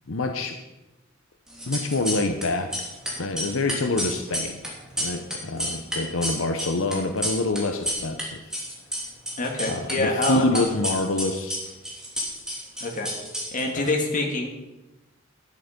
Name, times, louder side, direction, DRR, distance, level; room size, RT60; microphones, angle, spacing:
voice 1, 0.1-0.6 1.7-2.9 3.2-4.6 5.0-8.4 9.7-11.6 13.7-13.9, left 2 dB, 80° left, 6 dB, 0.8 m, -26 dB
sound 1, 1.5-2.5 2.7-8.2 8.5-9.9 10.2-13.9, equal, 5° right, 3.2 m, -30 dB
voice 2, 9.4-10.4 12.8-13.1 13.5-14.5, left 2 dB, 40° left, 1 dB, 2.1 m, -26 dB
11.5 x 10.5 x 5.2 m, 1.0 s
head